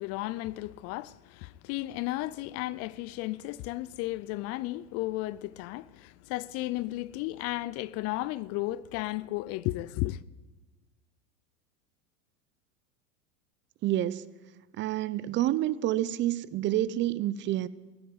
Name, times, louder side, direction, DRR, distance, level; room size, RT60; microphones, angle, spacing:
voice 1, 0.0-10.2, left 17 dB, 40° left, 0.4 m, -34 dB
voice 2, 13.8-14.3 14.7-17.7, right 13 dB, 30° right, 0.4 m, -28 dB
15.0 x 9.9 x 9.6 m
supercardioid pair, 130°, 39 cm